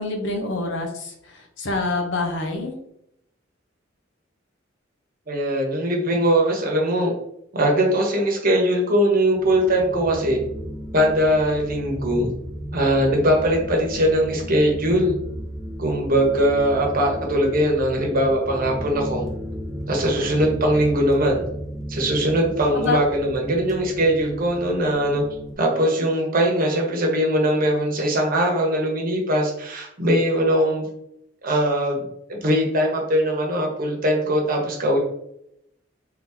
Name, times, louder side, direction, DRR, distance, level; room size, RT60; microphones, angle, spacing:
voice 1, 0.0-2.7 22.7-23.0, left 3 dB, 70° left, 3 dB, 0.8 m, -26 dB
voice 2, 5.3-7.1 7.5-10.4 10.9-12.3 12.7-15.2 15.8-19.2 19.9-21.4 21.9-25.2 25.6-30.9 31.4-35.0, equal, 50° right, 0 dB, 1.1 m, -21 dB
sound 1, 9.3-25.5, equal, ahead, 0.8 m, -34 dB
3.8 x 2.9 x 3.6 m, 0.77 s
head